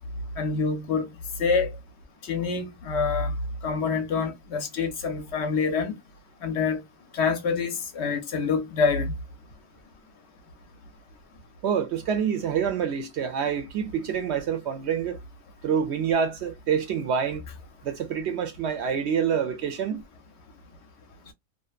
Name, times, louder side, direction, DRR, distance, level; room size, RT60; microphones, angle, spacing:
voice 1, 0.4-1.1 1.4-1.7 2.3-3.3 3.6-6.0 6.4-6.8 7.1-9.1, left 5 dB, 65° left, 0.8 m, -26 dB
voice 2, 11.6-15.2 15.6-17.4 17.8-20.0, right 7 dB, 65° right, 0.7 m, -27 dB
2.7 x 2.0 x 2.3 m
omnidirectional pair, 1.4 m